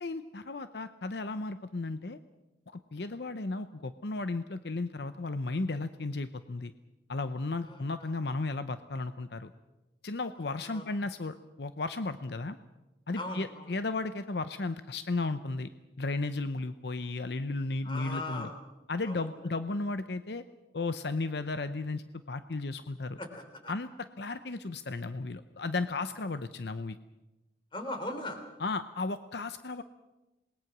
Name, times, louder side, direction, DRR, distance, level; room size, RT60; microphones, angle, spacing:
voice 1, 0.0-2.2 2.7-6.7 7.1-9.5 10.0-12.6 13.1-15.7 16.0-18.5 18.9-20.4 20.7-23.2 23.7-27.0 28.6-29.8, left 3 dB, 70° left, 11 dB, 0.7 m, -34 dB
voice 2, 7.7-8.1 10.6-10.8 13.1-13.7 17.8-18.6 19.0-19.3 23.2-23.7 27.7-28.4, left 2 dB, 25° left, 5 dB, 3.5 m, -39 dB
27.5 x 20.0 x 6.1 m, 1.0 s
head